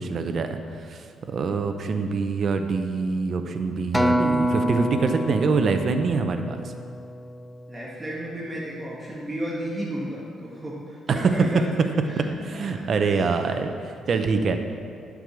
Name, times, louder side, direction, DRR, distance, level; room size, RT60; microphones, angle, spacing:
voice 1, 0.0-6.6 11.1-11.3 12.2-14.6, right 4 dB, 55° right, 7 dB, 0.8 m, -25 dB
Acoustic guitar, 3.9-8.4 9.0-9.1, equal, 5° left, 0.5 m, -27 dB
voice 2, 7.7-11.6 12.1-12.3 12.6-13.4, right 1 dB, 15° right, -6 dB, 1.7 m, -34 dB
9.9 x 4.9 x 7.0 m, 2.3 s
cardioid pair, 90°, 0 cm